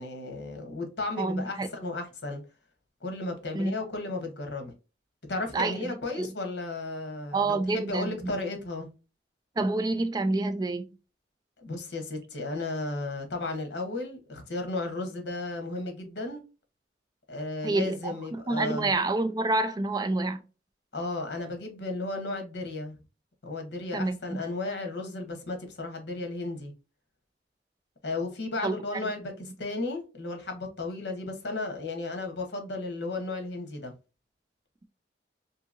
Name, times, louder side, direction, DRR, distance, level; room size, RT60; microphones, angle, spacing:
voice 1, 0.0-2.4 3.0-4.7 5.3-8.9 11.6-16.4 17.3-18.9 20.9-23.0 23.4-26.7 28.0-33.9, left 2 dB, 70° left, 0.9 m, -34 dB
voice 2, 1.2-1.7 3.5-3.7 5.5-6.3 7.3-8.4 9.6-10.9 17.6-18.1 18.5-20.4 23.9-24.4 28.6-29.1, right 2 dB, 20° right, 0.3 m, -28 dB
2.8 x 2.7 x 2.4 m
head